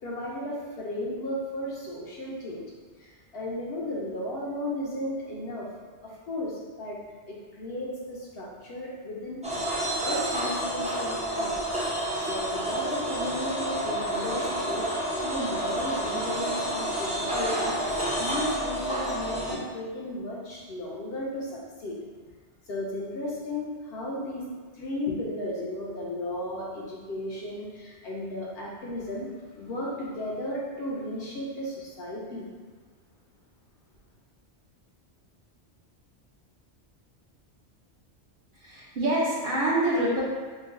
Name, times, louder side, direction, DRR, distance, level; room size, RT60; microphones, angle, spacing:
voice 1, 0.0-2.6 3.0-5.7 6.0-7.0 7.3-9.7 10.0-11.6 12.2-14.9 15.2-17.8 18.2-22.0 22.7-24.4 24.7-29.3 29.6-32.5, left 1 dB, 65° left, -4 dB, 0.8 m, -34 dB
sound 1, 9.4-19.5, right 1 dB, 10° right, 0.4 m, -29 dB
voice 2, 38.5-40.2, right 1 dB, 50° right, -7 dB, 0.8 m, -26 dB
3.0 x 2.1 x 3.6 m, 1.5 s
omnidirectional pair, 1.2 m